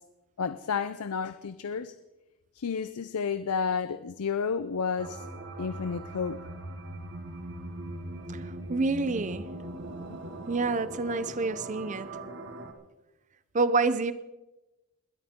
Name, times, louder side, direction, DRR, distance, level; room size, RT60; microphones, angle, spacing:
voice 1, 0.4-1.9 2.6-5.2 5.6-6.4 10.1-10.2, left 6 dB, 85° left, 0.5 m, -31 dB
sound 1, 5.0-12.7, right 1 dB, 55° right, 1.5 m, -40 dB
voice 2, 8.3-9.5 10.5-12.1 13.5-14.1, right 3 dB, 35° right, 0.5 m, -28 dB
21.0 x 12.5 x 3.6 m
head